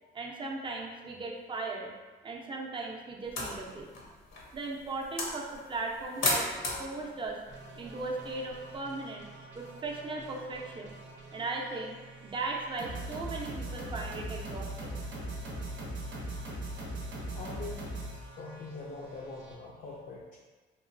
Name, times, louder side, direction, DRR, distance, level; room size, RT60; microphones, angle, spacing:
voice 1, 0.1-1.9 2.2-3.9 4.5-6.5 6.8-7.4 7.8-9.3 9.5-10.9 11.3-11.9 12.2-14.9, right 3 dB, 25° right, -1 dB, 0.5 m, -37 dB
sound 1, 3.2-8.8, left 2 dB, 75° left, 0.7 m, -37 dB
sound 2, 7.5-19.5, right 1 dB, 70° right, 0.6 m, -41 dB
voice 2, 17.3-17.9 18.4-20.4, left 3 dB, 40° left, -4 dB, 0.4 m, -43 dB
2.9 x 2.3 x 2.5 m, 1.3 s
cardioid pair, 90°, 20 cm